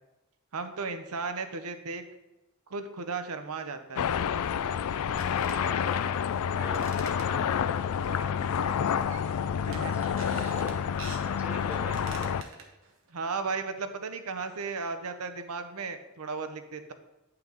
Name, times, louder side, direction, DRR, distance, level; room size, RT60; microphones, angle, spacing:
voice 1, 0.5-2.0 2.7-4.1 9.7-10.2 13.1-16.9, right 4 dB, 80° right, 8 dB, 0.7 m, -35 dB
sound 1, 3.4-3.5 4.0-4.1 5.1-5.6 6.6-7.7 8.2-8.6 8.8-9.4 9.7-11.3 11.7-13.1, right 4 dB, 60° right, 1.1 m, -46 dB
sound 2, 4.0-12.4, left 8 dB, 75° left, 0.3 m, -29 dB
voice 2, 5.3-6.2 6.5-7.5 8.1-9.1 9.9-10.8 11.2-12.4, right 1 dB, 5° right, 1 dB, 0.7 m, -44 dB
8.6 x 5.8 x 3.9 m, 0.98 s
head